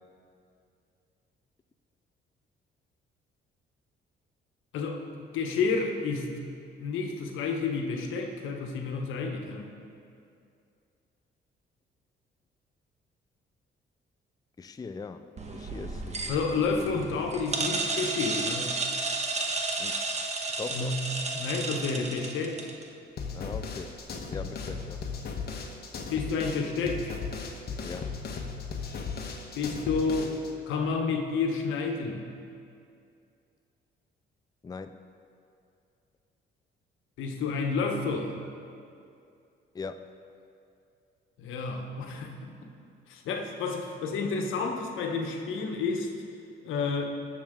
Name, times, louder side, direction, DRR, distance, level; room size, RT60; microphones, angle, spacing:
voice 1, 4.7-6.3 6.8-9.7 16.3-18.8 20.7-21.0 21.3-22.7 26.1-27.1 29.5-30.3 30.7-32.2 37.2-38.3 41.4-42.5 43.1-46.1 46.6-47.0, left 4 dB, 85° left, 3 dB, 1.3 m, -30 dB
voice 2, 14.6-15.2 15.5-16.2 19.8-20.0 20.6-20.9 23.3-24.0 24.3-25.0 27.8-28.1 34.6-35.0 39.7-40.1, left 4 dB, 20° left, 9 dB, 0.4 m, -40 dB
sound 1, 15.4-22.8, right 3 dB, 35° right, 1.3 m, -32 dB
sound 2, 23.2-30.5, left 5 dB, 50° left, 1.4 m, -36 dB
19.0 x 7.1 x 3.8 m, 2.5 s
cardioid pair, 90°, 20 cm